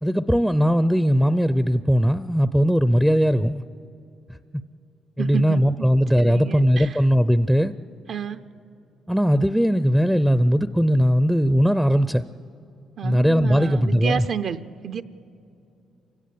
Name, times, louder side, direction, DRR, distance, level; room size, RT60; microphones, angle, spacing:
voice 1, 0.0-3.6 5.2-7.7 9.1-12.2 13.0-14.3, equal, ahead, 0.5 m, -19 dB
voice 2, 5.2-5.9 6.2-7.0 8.1-8.4 13.0-15.0, right 8 dB, 60° right, 0.6 m, -30 dB
28.0 x 16.5 x 8.5 m
cardioid pair, 90°, 0 cm